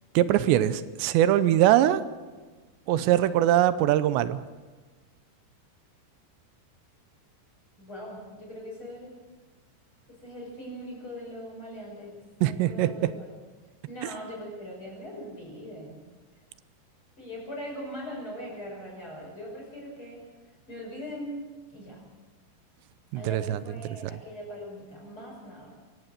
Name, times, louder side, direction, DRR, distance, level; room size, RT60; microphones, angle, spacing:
voice 1, 0.1-2.0 2.9-4.4 12.4-12.9 23.1-23.6 24.0-24.1, right 13 dB, 80° right, 14 dB, 2.9 m, -22 dB
voice 2, 7.8-9.1 10.1-12.1 12.4-13.4 13.9-16.0 17.2-20.2 20.7-21.4 21.7-22.0 23.1-25.7, equal, 25° left, -3 dB, 6.4 m, -40 dB
23.5 x 17.0 x 6.7 m, 1.3 s
omnidirectional pair, 5.3 m